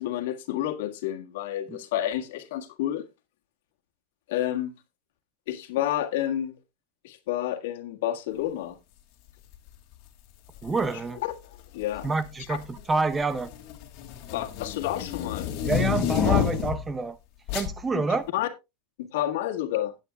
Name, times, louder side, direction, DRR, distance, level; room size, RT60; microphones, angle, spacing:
voice 1, 0.0-3.1 4.3-4.7 5.5-6.6 7.0-8.8 11.2-11.3 11.7-12.1 12.5-12.6 14.3-15.5 17.9-18.0 18.3-18.5 19.0-19.9, left 12 dB, 70° left, 1.7 m, -29 dB
sound 1, 10.6-10.9 11.8-12.3 12.6-16.9 17.5-17.7, left 9 dB, 45° left, 2.2 m, -28 dB
voice 2, 10.6-11.2 12.0-13.5 15.6-17.2 17.5-18.2, right 3 dB, 10° right, 0.6 m, -27 dB
15.5 x 9.0 x 2.3 m
supercardioid pair, 160°, 0 cm